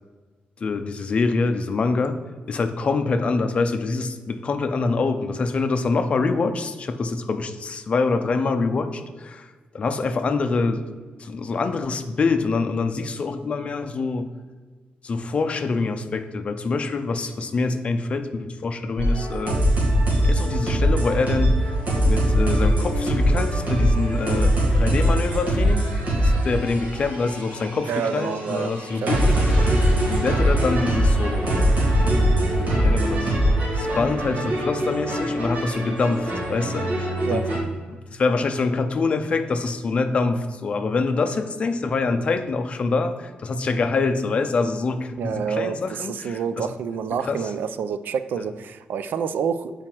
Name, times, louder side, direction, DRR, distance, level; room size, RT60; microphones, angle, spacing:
voice 1, 0.6-2.2 2.5-10.9 11.2-14.3 15.0-19.6 20.2-21.8 22.1-25.9 26.2-31.8 32.5-33.3 33.7-37.4 37.9-46.7 47.2-47.5 48.4-48.5, left 4 dB, 35° left, 8 dB, 0.6 m, -25 dB
sound 1, 19.0-37.6, equal, 55° right, 2.4 m, -22 dB
voice 2, 27.9-28.8 29.0-29.3 29.6-29.7 37.2-37.4 45.2-49.7, right 7 dB, 85° right, 12 dB, 0.4 m, -28 dB
7.4 x 4.8 x 4.5 m, 1.4 s
wide cardioid pair, 165°, 3 cm